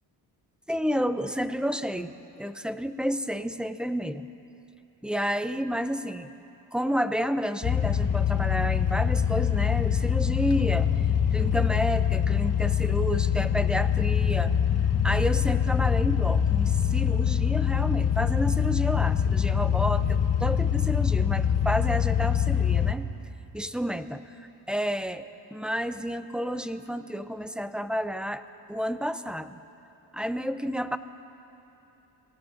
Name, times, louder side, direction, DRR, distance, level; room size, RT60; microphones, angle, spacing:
voice 1, 0.7-4.3 5.0-6.3 6.7-10.9 11.3-14.5 15.0-23.1 23.5-24.2 24.7-25.2 25.5-28.4 28.7-29.6 30.1-31.0, equal, ahead, 11 dB, 0.5 m, -30 dB
sound 1, 7.6-22.9, left 8 dB, 35° left, 0.8 m, -24 dB
25.0 x 17.5 x 2.6 m, 3.0 s
cardioid pair, 70°, 42 cm